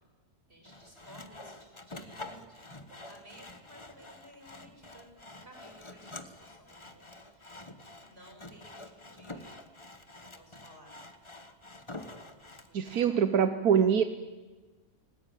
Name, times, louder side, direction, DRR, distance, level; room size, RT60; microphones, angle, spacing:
voice 1, 0.5-5.1 5.4-9.6 10.1-11.0 12.7-13.2, equal, 45° right, 1 dB, 7.3 m, -57 dB
Sawing, 0.6-13.1, left 2 dB, 20° left, 1.4 m, -48 dB
voice 2, 12.7-14.0, right 7 dB, 85° right, 10 dB, 1.5 m, -24 dB
25.5 x 20.0 x 9.1 m, 1.3 s
omnidirectional pair, 1.5 m